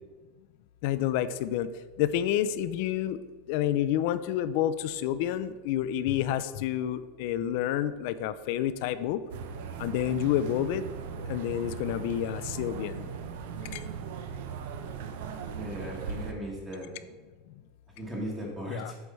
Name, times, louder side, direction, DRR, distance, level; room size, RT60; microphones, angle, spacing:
voice 1, 0.8-1.7 2.0-3.2 3.5-9.2 9.8-10.8 11.3-13.1 13.7-13.8 18.7-18.9, left 11 dB, 60° left, 13 dB, 0.3 m, -29 dB
sound 1, 9.3-16.3, right 6 dB, 70° right, 0.6 m, -38 dB
voice 2, 15.5-16.9 18.0-18.9, equal, 15° right, -3 dB, 1.3 m, -37 dB
7.9 x 3.2 x 5.3 m, 1.4 s
supercardioid pair, 145°, 0 cm